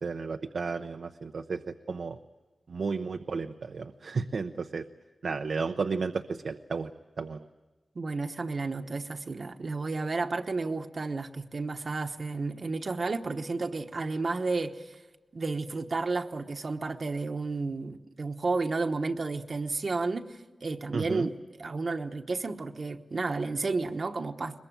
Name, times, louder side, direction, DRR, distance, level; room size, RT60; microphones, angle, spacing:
voice 1, 0.0-2.2 2.7-4.8 5.2-6.9 7.2-7.5 20.9-21.3, right 4 dB, 80° right, 6 dB, 0.7 m, -33 dB
voice 2, 7.9-14.9 15.3-24.6, right 3 dB, 60° right, 5 dB, 1.1 m, -32 dB
22.0 x 21.5 x 8.8 m, 1.2 s
wide cardioid pair, 70°, 0 cm